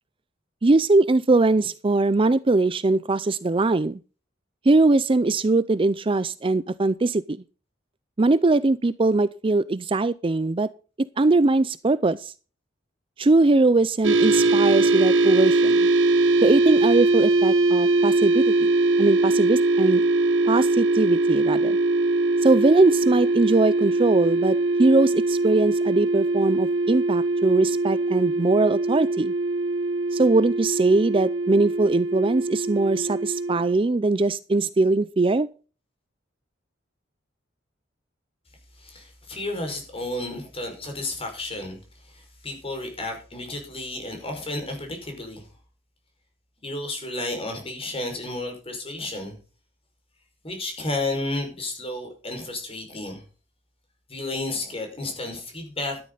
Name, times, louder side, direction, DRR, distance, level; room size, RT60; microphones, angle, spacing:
voice 1, 0.6-4.0 4.7-7.4 8.2-10.7 11.2-12.3 13.2-15.9 16.4-18.7 19.0-20.0 20.5-21.8 22.4-29.3 30.1-35.5, right 2 dB, 30° right, 16 dB, 0.5 m, -21 dB
sound 1, 14.0-33.7, right 2 dB, 85° right, 1.3 m, -22 dB
voice 2, 38.8-41.8 42.0-45.5 46.6-49.4 50.4-53.2 54.1-56.0, left 2 dB, 30° left, 4 dB, 5.3 m, -32 dB
13.0 x 11.0 x 4.0 m, 0.36 s
head